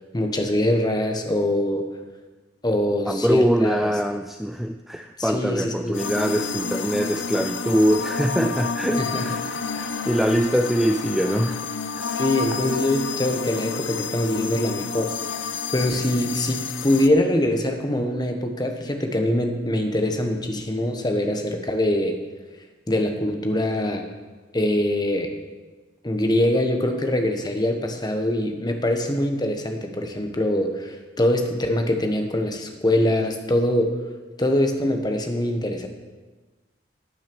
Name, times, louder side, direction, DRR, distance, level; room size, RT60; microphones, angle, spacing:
voice 1, 0.1-2.0 2.6-3.8 5.2-6.0 9.0-9.3 12.1-15.2 15.7-22.2 22.9-24.1 24.5-25.3 26.0-34.0 34.4-35.9, left 1 dB, 20° left, 5 dB, 1.1 m, -23 dB
voice 2, 3.1-11.7 11.9-12.2, equal, ahead, 6 dB, 0.3 m, -23 dB
sound 1, 5.9-17.1, left 5 dB, 90° left, 0.7 m, -30 dB
9.3 x 9.1 x 7.1 m, 1.3 s
head